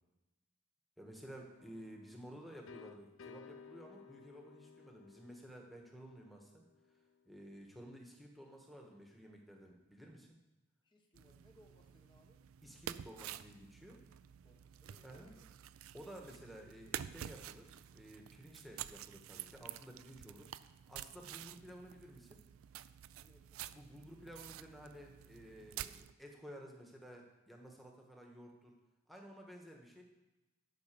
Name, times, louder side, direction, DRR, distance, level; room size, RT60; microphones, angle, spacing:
voice 1, 1.0-6.6 7.2-10.3 12.6-14.0 15.0-15.3 15.9-20.5 20.9-22.4 23.7-28.7 29.1-30.0, equal, ahead, 0 dB, 1.3 m, -53 dB
sound 1, 1.6-7.3, left 6 dB, 65° left, 0.4 m, -58 dB
voice 2, 10.8-12.4 14.4-15.5 15.8-15.9 23.1-23.8, equal, 20° left, 2 dB, 1.0 m, -67 dB
sound 2, 11.1-26.1, right 11 dB, 70° right, 0.4 m, -50 dB
10.5 x 5.6 x 6.8 m, 1.1 s
head